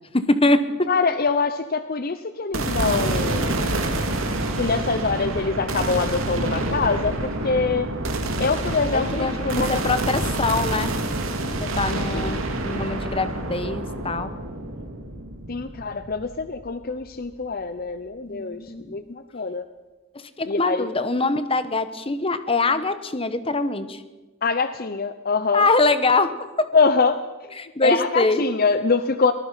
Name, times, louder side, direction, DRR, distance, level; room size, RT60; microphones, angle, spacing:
voice 1, 0.1-0.9 8.9-11.0 11.6-14.4 18.2-19.0 20.1-24.0 25.5-26.7 27.6-28.4, left 2 dB, 25° left, 12 dB, 1.2 m, -23 dB
voice 2, 0.9-3.7 4.6-7.9 8.4-9.8 12.1-12.5 15.5-18.6 18.9-19.6 20.5-20.9 24.4-25.6 26.7-27.2 27.8-29.3, left 4 dB, 45° left, 11 dB, 0.7 m, -24 dB
sound 1, 2.5-16.8, right 2 dB, 75° right, 2.7 m, -27 dB
23.5 x 19.0 x 5.8 m, 1.2 s
head